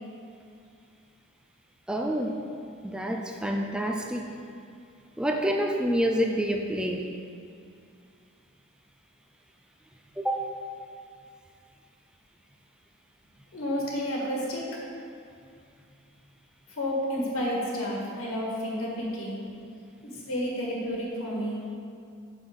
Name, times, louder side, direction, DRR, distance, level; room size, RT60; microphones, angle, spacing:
voice 1, 1.9-2.3 2.8-4.2 5.2-7.1 10.2-10.4, equal, 5° right, 2 dB, 0.4 m, -27 dB
voice 2, 13.5-14.7 16.7-19.4 20.0-21.6, equal, 85° left, -3 dB, 1.6 m, -31 dB
6.1 x 5.5 x 5.1 m, 2.4 s
head